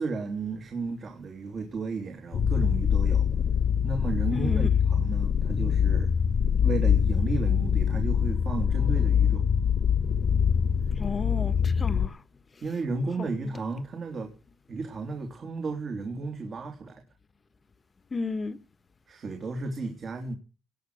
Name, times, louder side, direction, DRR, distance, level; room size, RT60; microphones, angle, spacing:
voice 1, 0.0-3.3 3.8-6.1 6.6-9.4 11.9-12.0 12.6-14.3 14.7-17.0 19.1-20.4, right 3 dB, 50° right, 3.2 m, -33 dB
sound 1, 2.3-12.1, left 7 dB, 60° left, 1.9 m, -24 dB
voice 2, 4.3-4.7 11.0-12.2 13.2-13.3 18.1-18.6, left 4 dB, 30° left, 1.6 m, -32 dB
19.5 x 6.5 x 8.0 m
cardioid pair, 90°, 0 cm